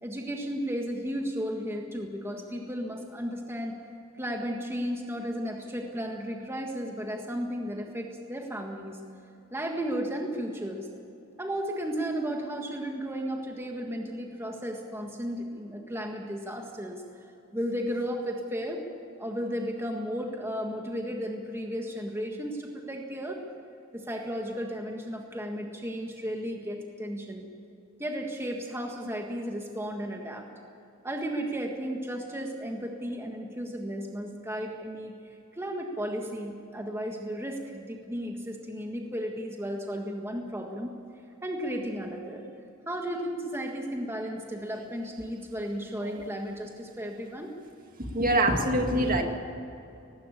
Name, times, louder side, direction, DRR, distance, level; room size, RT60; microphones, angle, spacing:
voice 1, 0.0-3.8 4.1-9.0 9.5-10.9 11.4-17.0 17.5-18.8 19.2-23.4 23.9-27.5 28.0-30.5 31.0-40.9 41.4-42.5 42.8-47.5, equal, 10° right, 2 dB, 1.6 m, -34 dB
voice 2, 48.1-49.2, right 1 dB, 40° right, 4 dB, 2.0 m, -24 dB
19.5 x 15.5 x 8.5 m, 2.8 s
head